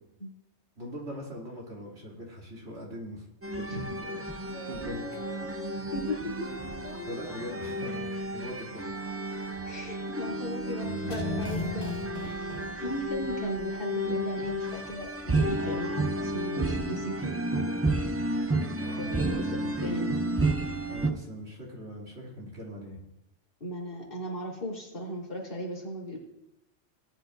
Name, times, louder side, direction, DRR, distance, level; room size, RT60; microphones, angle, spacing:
voice 1, 0.8-3.3 3.6-4.2 4.7-5.1 7.0-8.9 18.8-20.0 20.9-23.0, equal, 70° right, -3 dB, 3.0 m, -41 dB
sound 1, 3.4-21.1, right 1 dB, 20° right, 0.3 m, -32 dB
Singing, 4.4-5.8 6.3-8.3 9.1-9.6, equal, 70° left, 2.4 m, -44 dB
voice 2, 5.9-6.5 9.6-11.9 12.2-17.3 19.0-20.2 23.6-26.2, equal, 50° left, -5 dB, 3.1 m, -37 dB
sound 2, 10.8-13.7 13.9-14.0, left 3 dB, 20° left, 1.1 m, -37 dB
18.0 x 9.0 x 2.6 m, 0.87 s
omnidirectional pair, 1.2 m